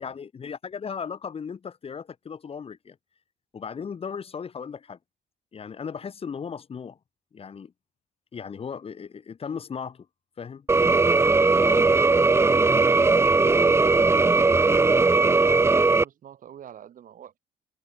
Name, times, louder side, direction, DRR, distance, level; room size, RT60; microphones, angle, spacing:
voice 1, 0.0-3.0 3.5-5.0 5.5-7.0 7.3-7.7 8.3-10.1 10.4-10.7 11.6-12.0, left 6 dB, 35° left, 2.3 m, -36 dB
sound 1, 10.7-16.0, right 3 dB, 15° right, 0.8 m, -19 dB
voice 2, 14.6-17.4, right 9 dB, 50° right, 4.7 m, -46 dB
cardioid pair, 110°, 17 cm